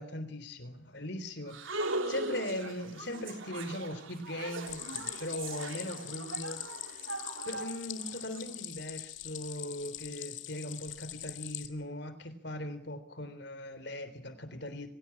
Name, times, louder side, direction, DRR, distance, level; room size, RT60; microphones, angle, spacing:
voice 1, 0.0-6.7 7.5-14.9, left 1 dB, 60° left, 11 dB, 3.6 m, -39 dB
sound 1, 1.5-8.4, right 2 dB, 90° right, 3.3 m, -39 dB
Stream, 4.7-11.7, left 13 dB, 80° left, 2.2 m, -42 dB
24.5 x 17.0 x 10.0 m, 0.64 s
head